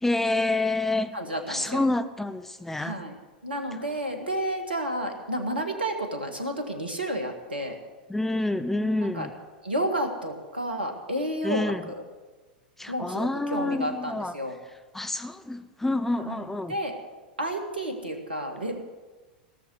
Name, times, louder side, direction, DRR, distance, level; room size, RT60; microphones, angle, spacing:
voice 1, 0.0-1.2 1.5-3.0 8.1-9.3 11.4-11.8 12.8-14.3 14.9-16.8, left 2 dB, 5° left, 10 dB, 0.7 m, -28 dB
voice 2, 1.1-1.8 2.8-3.1 3.4-7.8 9.0-9.3 9.6-12.0 12.9-14.6 16.2-17.0 17.4-18.8, right 1 dB, 80° right, 5 dB, 1.8 m, -31 dB
17.0 x 6.9 x 9.4 m, 1.2 s
figure-of-eight pair, 90°, 5 cm